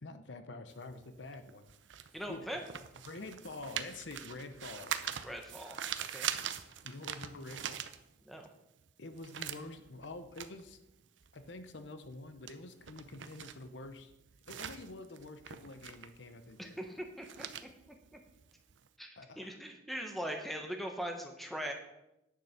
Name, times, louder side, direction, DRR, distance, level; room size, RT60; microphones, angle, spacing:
voice 1, 0.0-1.7 2.3-2.5 3.1-5.0 6.8-7.8 9.0-10.8 11.3-14.1 14.5-16.8 19.2-19.6, left 2 dB, 75° left, 9 dB, 0.8 m, -47 dB
sound 1, 0.7-8.5 8.8-18.9, right 9 dB, 90° right, 0.7 m, -43 dB
voice 2, 2.1-2.6 5.2-5.8 6.1-6.3 8.2-8.4 16.6-17.5 17.9-18.2 19.0-21.7, equal, ahead, 3 dB, 1.2 m, -41 dB
10.0 x 6.8 x 5.8 m, 0.87 s
head